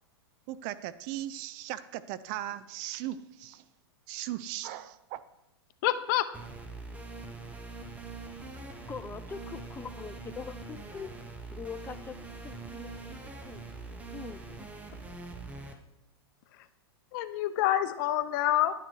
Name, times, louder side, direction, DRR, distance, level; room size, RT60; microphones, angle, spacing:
voice 1, 0.5-3.6 4.1-5.2, right 13 dB, 45° right, 15 dB, 0.6 m, -38 dB
voice 2, 5.8-6.3 16.6-16.7 17.1-18.7, left 13 dB, 50° left, 12 dB, 0.8 m, -27 dB
sound 1, 6.3-15.7, right 3 dB, 10° right, 1.1 m, -43 dB
voice 3, 8.9-11.1 11.5-13.2 13.4-13.6 14.1-14.7, left 6 dB, 15° left, 13 dB, 0.6 m, -43 dB
11.0 x 9.1 x 4.7 m, 0.89 s
hypercardioid pair, 120°, 14 cm